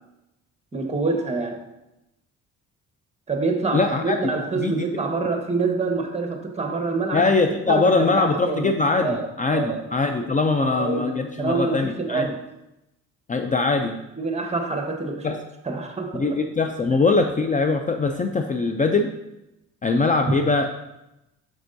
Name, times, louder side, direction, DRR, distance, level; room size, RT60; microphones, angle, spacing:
voice 1, 0.7-1.6 3.3-7.3 7.7-8.7 9.0-9.9 10.6-12.4 14.2-15.4 15.6-16.3 16.9-17.0, right 3 dB, 20° right, 3 dB, 1.3 m, -26 dB
voice 2, 3.7-4.2 4.5-5.0 7.1-12.3 13.3-14.0 15.2-15.4 16.1-19.1 19.8-20.7, left 3 dB, 25° left, 6 dB, 0.5 m, -22 dB
7.9 x 6.4 x 2.7 m, 0.92 s
cardioid pair, 90°, 30 cm